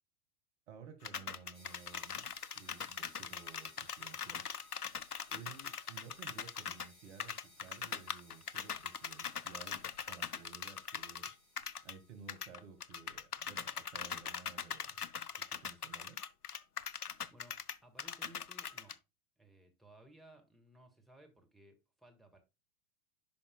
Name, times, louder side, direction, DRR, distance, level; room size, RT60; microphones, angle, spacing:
voice 1, 0.7-2.3 2.6-4.5 5.3-11.3 11.8-15.0 15.4-16.2, right 6 dB, 50° right, 1.9 m, -55 dB
sound 1, 1.0-6.9 7.2-12.0 12.3-18.9, left 7 dB, 85° left, 0.6 m, -41 dB
sound 2, 1.5-12.8, left 1 dB, 20° left, 4.2 m, -62 dB
voice 2, 17.3-19.0 19.4-22.4, right 1 dB, ahead, 1.6 m, -60 dB
10.5 x 5.3 x 2.2 m
figure-of-eight pair, 100°, 44 cm